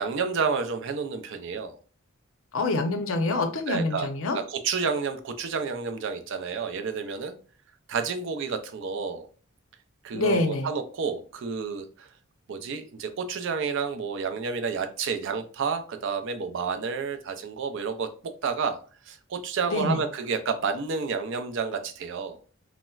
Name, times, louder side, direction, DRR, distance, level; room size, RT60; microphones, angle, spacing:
voice 1, 0.0-1.8 3.7-4.1 4.3-7.3 7.9-9.3 10.0-12.1 12.5-22.4, right 5 dB, 60° right, 8 dB, 0.4 m, -30 dB
voice 2, 2.5-4.4 10.1-10.7 19.6-20.0, left 2 dB, 70° left, 6 dB, 0.6 m, -26 dB
4.1 x 2.0 x 2.3 m, 0.39 s
head